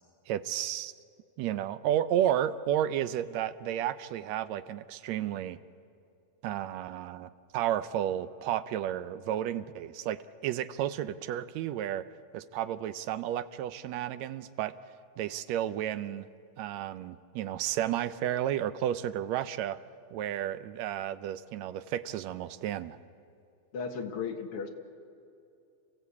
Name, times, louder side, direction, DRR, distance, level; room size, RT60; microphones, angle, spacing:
voice 1, 0.3-0.9 1.4-5.6 6.4-12.1 12.3-14.7 15.2-16.3 16.6-19.8 20.1-23.0, right 11 dB, 75° right, 13 dB, 1.8 m, -32 dB
voice 2, 23.7-24.7, left 5 dB, 55° left, 4 dB, 2.1 m, -35 dB
28.0 x 15.5 x 8.4 m, 2.5 s
omnidirectional pair, 3.4 m